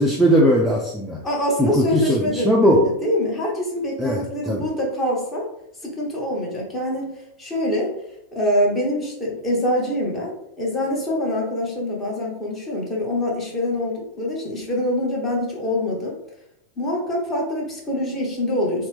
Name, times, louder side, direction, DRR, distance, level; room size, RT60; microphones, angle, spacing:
voice 1, 0.0-1.2 1.6-2.9 4.0-4.7, equal, ahead, -2 dB, 0.4 m, -19 dB
voice 2, 1.2-5.5 5.8-7.1 7.4-7.9 8.3-16.1 16.8-18.9, left 1 dB, 20° left, -2 dB, 0.9 m, -24 dB
2.8 x 2.1 x 3.2 m, 0.80 s
figure-of-eight pair, 90°, 0 cm